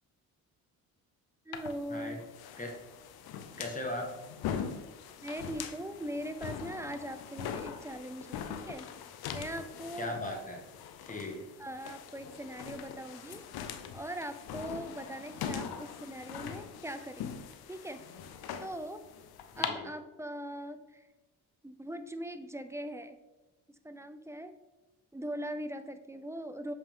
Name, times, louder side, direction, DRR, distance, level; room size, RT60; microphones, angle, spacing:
sound 1, 1.5-19.7, left 8 dB, 75° left, 0.8 m, -42 dB
voice 1, 1.5-2.2 5.2-8.9 9.3-10.2 11.6-13.4 13.9-18.0 18.6-19.0 19.6-21.1 21.6-23.2 23.8-24.5 25.1-26.7, right 1 dB, 5° right, 9 dB, 0.6 m, -41 dB
voice 2, 3.6-4.1 10.0-10.6 11.1-11.4 19.6-19.9, left 1 dB, 20° left, 0 dB, 1.8 m, -38 dB
7.4 x 5.2 x 3.7 m, 1.1 s
supercardioid pair, 70°, 37 cm